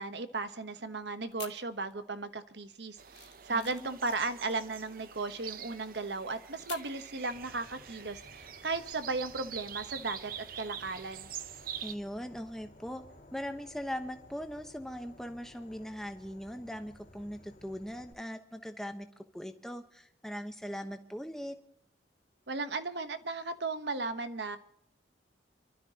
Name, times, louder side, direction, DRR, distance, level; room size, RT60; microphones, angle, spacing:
voice 1, 0.0-11.3 22.5-24.6, right 3 dB, 70° right, 10 dB, 1.1 m, -36 dB
sound 1, 1.3-2.2 2.5-7.0, left 12 dB, 75° left, 1.3 m, -50 dB
sound 2, 3.0-12.0, right 9 dB, 50° right, 0.7 m, -45 dB
voice 2, 3.5-4.0 11.8-13.0 13.3-21.6, equal, ahead, 6 dB, 1.0 m, -40 dB
Insect / Frog, 7.3-18.1, left 1 dB, 45° left, 2.3 m, -57 dB
29.0 x 12.5 x 2.9 m, 0.72 s
head